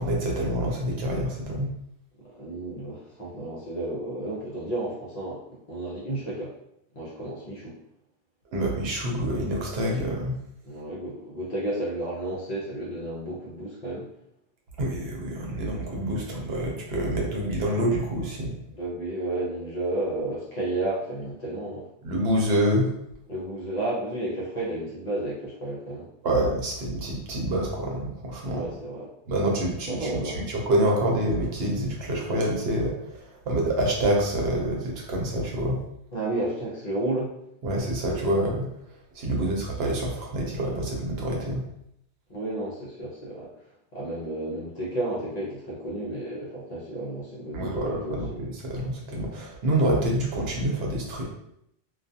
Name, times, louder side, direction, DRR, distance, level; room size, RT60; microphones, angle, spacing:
voice 1, 0.0-1.7 8.5-10.4 14.8-18.5 22.0-22.9 26.2-28.6 29.3-35.8 37.6-38.7 39.1-41.6 47.5-51.2, right 1 dB, 75° right, -1 dB, 0.9 m, -27 dB
voice 2, 2.2-6.5 6.9-7.8 10.6-14.1 18.7-21.9 23.3-26.1 28.4-29.1 29.9-30.5 36.1-37.3 39.3-39.5 42.3-43.5 43.9-48.4, right 1 dB, 45° left, -5 dB, 0.6 m, -32 dB
2.3 x 2.2 x 2.6 m, 0.77 s
omnidirectional pair, 1.1 m